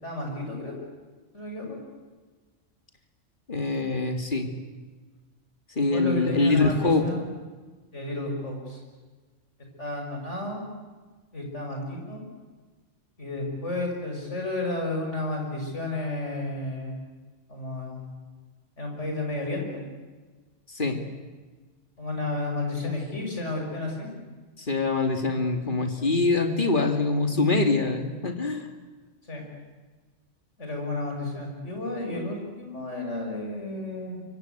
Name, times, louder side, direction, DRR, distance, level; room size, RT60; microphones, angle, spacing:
voice 1, 0.0-0.7 1.3-1.8 5.8-7.3 7.9-8.8 9.8-10.6 11.3-12.2 13.2-17.0 17.5-18.1 18.8-19.8 22.0-24.1 29.3-29.4 30.6-34.2, left 2 dB, 70° left, 1 dB, 6.9 m, -32 dB
voice 2, 3.5-4.5 5.8-7.0 20.7-21.0 24.7-28.7, left 3 dB, 40° left, 5 dB, 2.9 m, -24 dB
25.5 x 23.5 x 8.3 m, 1.3 s
omnidirectional pair, 1.3 m